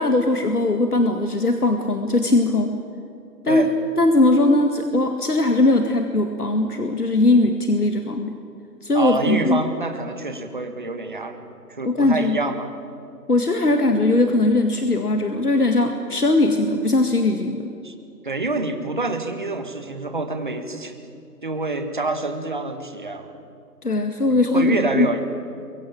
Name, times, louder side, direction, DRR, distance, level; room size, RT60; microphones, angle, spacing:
voice 1, 0.0-2.7 3.4-3.7 4.0-8.4 8.8-9.6 11.8-12.4 13.3-17.7 23.8-25.1, left 2 dB, 65° left, 6 dB, 2.1 m, -19 dB
voice 2, 8.9-12.7 17.8-17.9 18.2-20.9 21.4-23.4 24.3-25.2, right 3 dB, 30° right, 7 dB, 1.7 m, -27 dB
23.5 x 22.5 x 8.7 m, 2.6 s
figure-of-eight pair, 170°, 49 cm